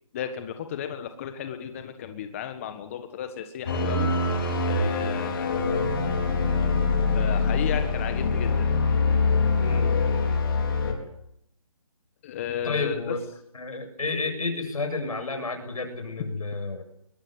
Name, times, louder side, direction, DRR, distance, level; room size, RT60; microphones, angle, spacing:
voice 1, 0.1-5.8 7.1-8.6 12.2-13.1, left 9 dB, 25° left, 8 dB, 1.6 m, -34 dB
sound 1, 3.7-10.9, left 3 dB, 40° left, 5.1 m, -24 dB
voice 2, 9.6-9.9 12.6-13.2 13.5-16.8, left 3 dB, 75° left, 7 dB, 7.8 m, -31 dB
22.5 x 21.5 x 7.9 m, 0.74 s
figure-of-eight pair, 160°, 18 cm